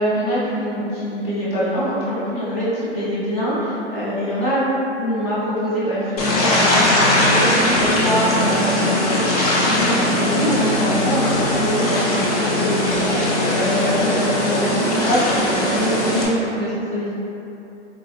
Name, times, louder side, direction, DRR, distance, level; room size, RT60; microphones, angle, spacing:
voice 1, 0.0-4.6 5.0-17.1, equal, 15° left, -10 dB, 0.8 m, -24 dB
sound 1, 6.2-16.3, left 1 dB, 35° left, 0.4 m, -19 dB
3.6 x 3.3 x 2.4 m, 2.9 s
hypercardioid pair, 150°, 36 cm